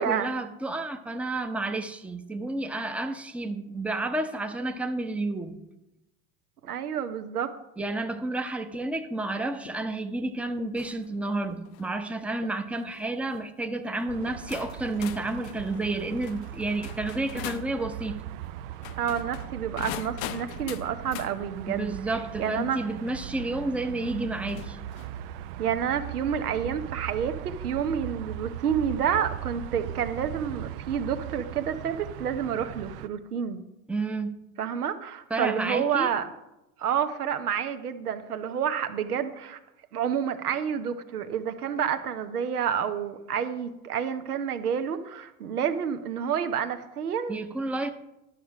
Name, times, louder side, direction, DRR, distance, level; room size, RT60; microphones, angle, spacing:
voice 1, 0.0-5.6 7.8-18.2 21.7-24.8 33.9-34.4 35.3-36.1 47.3-47.9, right 2 dB, 5° right, 7 dB, 0.7 m, -31 dB
voice 2, 6.6-7.5 19.0-22.0 22.4-22.8 25.6-33.6 34.6-36.3 36.8-39.6 39.9-47.4, right 8 dB, 80° right, 10 dB, 1.0 m, -29 dB
sound 1, 7.8-7.9 8.7-8.8 9.6-9.7 10.6-10.7 11.5-11.6 12.4-12.5 13.3-13.4 14.3-14.4 15.2-15.3 16.1-16.2, left 12 dB, 70° left, 0.9 m, -46 dB
sound 2, 10.8-11.1 11.6-11.9 12.7-13.0 13.9-14.0 14.5-17.7 18.7-21.3 23.1-23.2 24.5-25.2, left 12 dB, 40° left, 0.6 m, -41 dB
sound 3, 14.1-33.1, right 12 dB, 40° right, 0.4 m, -39 dB
11.5 x 6.6 x 4.9 m, 0.93 s
hypercardioid pair, 85°, 45 cm